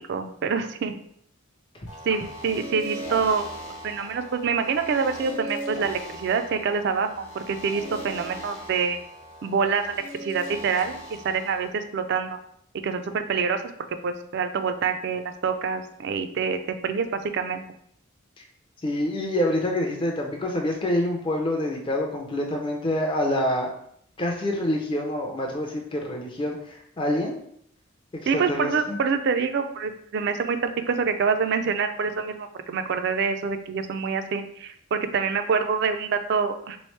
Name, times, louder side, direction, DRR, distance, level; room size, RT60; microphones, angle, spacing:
voice 1, 0.1-0.9 2.1-9.0 9.4-12.4 12.8-13.6 14.0-17.6 28.3-36.8, right 5 dB, 50° right, 9 dB, 0.3 m, -26 dB
sound 1, 1.9-11.7, right 1 dB, 85° left, 0.9 m, -39 dB
voice 2, 18.8-23.8 24.2-27.4 28.1-29.0, left 1 dB, 25° left, 1 dB, 0.4 m, -27 dB
3.5 x 3.1 x 3.1 m, 0.68 s
head